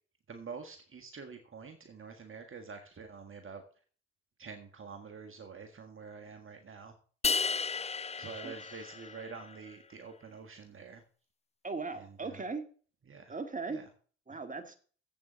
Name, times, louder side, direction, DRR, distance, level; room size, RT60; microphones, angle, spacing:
voice 1, 0.3-3.6 4.4-6.9 8.2-11.0 12.0-12.4 13.1-13.3 13.7-13.8, right 5 dB, 45° right, 5 dB, 1.6 m, -47 dB
sound 1, 7.2-9.5, left 4 dB, 20° left, 0.6 m, -33 dB
voice 2, 8.2-8.9 11.6-12.6 13.3-13.8 14.3-14.7, right 4 dB, 25° right, 8 dB, 2.0 m, -39 dB
8.0 x 7.0 x 7.2 m, 0.42 s
supercardioid pair, 55°, 30 cm